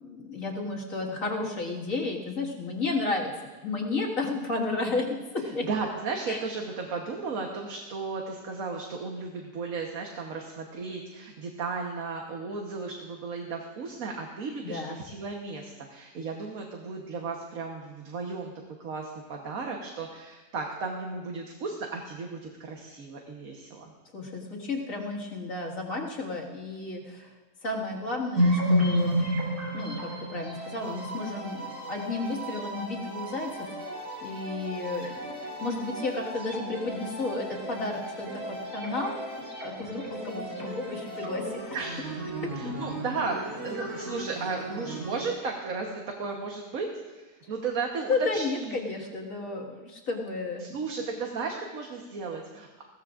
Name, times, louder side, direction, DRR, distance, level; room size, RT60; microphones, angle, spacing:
voice 1, 0.0-5.7 6.3-6.4 14.6-15.0 24.1-27.4 27.6-29.2 29.7-41.6 42.4-42.5 48.1-50.8, left 3 dB, 55° left, -3 dB, 2.3 m, -32 dB
voice 2, 5.6-18.5 18.8-23.9 41.7-42.2 42.5-48.8 50.6-52.8, right 4 dB, 60° right, 1 dB, 1.5 m, -35 dB
sound 1, 28.3-45.2, equal, 85° right, 5.0 m, -33 dB
20.5 x 17.0 x 2.5 m, 1.2 s
omnidirectional pair, 1.7 m